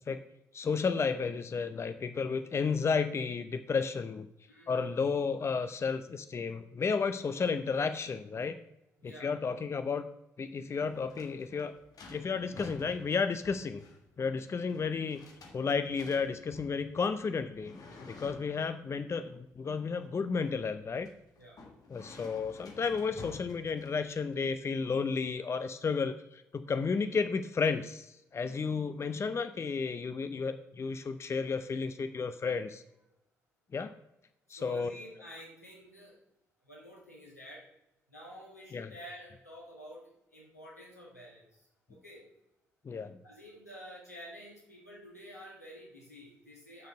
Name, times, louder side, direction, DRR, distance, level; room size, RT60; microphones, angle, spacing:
voice 1, 0.5-4.3 4.7-8.6 9.0-10.1 10.4-11.7 12.1-13.8 14.2-15.2 15.5-17.7 18.0-21.1 21.9-32.8 33.7-33.9 34.5-34.9 38.7-38.9 42.8-43.2, left 5 dB, 35° left, 10 dB, 0.6 m, -32 dB
voice 2, 4.5-4.9 9.0-9.3 21.4-21.6 34.6-36.2 36.6-37.6 38.1-42.2 43.2-46.9, equal, 90° left, -4 dB, 1.7 m, -50 dB
sound 1, 10.7-24.3, left 3 dB, 50° left, 1.6 m, -52 dB
6.5 x 6.4 x 6.4 m, 0.87 s
figure-of-eight pair, 40°, 8 cm